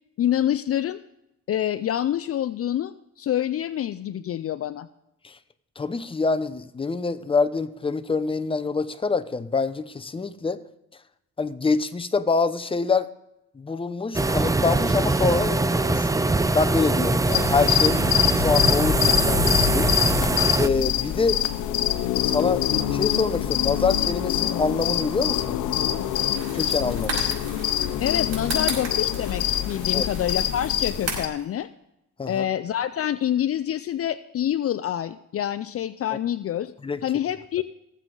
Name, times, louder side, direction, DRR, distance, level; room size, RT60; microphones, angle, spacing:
voice 1, 0.2-1.0 1.5-4.9 28.0-31.7 32.3-36.7 37.0-37.6, left 11 dB, 50° left, 13 dB, 0.5 m, -26 dB
voice 2, 5.8-10.6 11.4-13.1 13.5-16.1 16.5-18.0 18.3-19.9 20.6-21.4 22.2-25.6 26.5-27.3 29.9-30.1 32.2-32.4 36.8-37.0, left 4 dB, 20° left, 10 dB, 0.8 m, -25 dB
sound 1, 14.1-20.7, right 2 dB, 10° right, 0.5 m, -22 dB
sound 2, 17.3-31.3, left 11 dB, 90° left, 0.8 m, -25 dB
sound 3, 26.1-31.4, right 3 dB, 55° right, 5.5 m, -36 dB
18.5 x 7.6 x 3.9 m, 0.87 s
cardioid pair, 90°, 30 cm